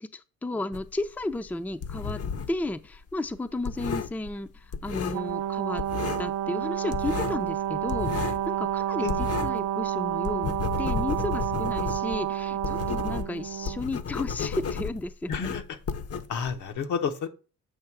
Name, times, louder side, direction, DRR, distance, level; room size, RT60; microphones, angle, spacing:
voice 1, 0.0-2.2 2.5-5.8 6.2-15.5, left 2 dB, 5° left, 0.4 m, -33 dB
sound 1, 0.7-2.7 2.9-5.5 5.8-6.4 6.6-9.7 10.0-16.7, left 6 dB, 50° left, 0.7 m, -33 dB
Brass instrument, 5.1-13.8, right 12 dB, 65° right, 0.5 m, -30 dB
voice 2, 15.3-15.8 16.3-17.3, left 6 dB, 75° left, 1.0 m, -30 dB
7.8 x 2.8 x 5.9 m
cardioid pair, 90°, 30 cm